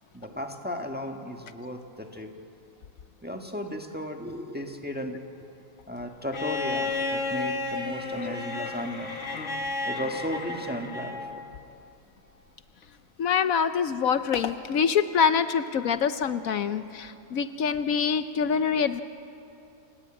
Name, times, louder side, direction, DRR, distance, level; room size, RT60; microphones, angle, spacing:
voice 1, 0.1-2.3 3.2-5.2 5.9-9.1 9.8-11.3, equal, 5° right, 3 dB, 1.5 m, -35 dB
Bowed string instrument, 6.3-11.4 12.8-12.9, left 3 dB, 55° left, 1.9 m, -32 dB
voice 2, 13.2-19.0, left 7 dB, 70° left, 10 dB, 1.2 m, -25 dB
29.5 x 18.0 x 8.8 m, 2.7 s
omnidirectional pair, 1.6 m